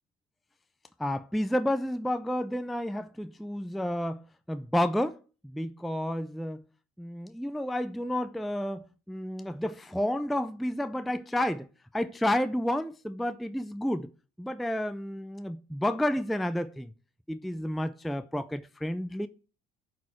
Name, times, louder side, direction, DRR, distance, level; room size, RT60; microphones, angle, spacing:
voice 1, 1.0-4.2 4.5-5.2 5.4-6.6 7.0-11.7 11.9-14.1 14.4-16.9 17.3-19.3, left 1 dB, ahead, 0.3 m, -30 dB
11.5 x 4.3 x 4.3 m
cardioid pair, 110°, 17 cm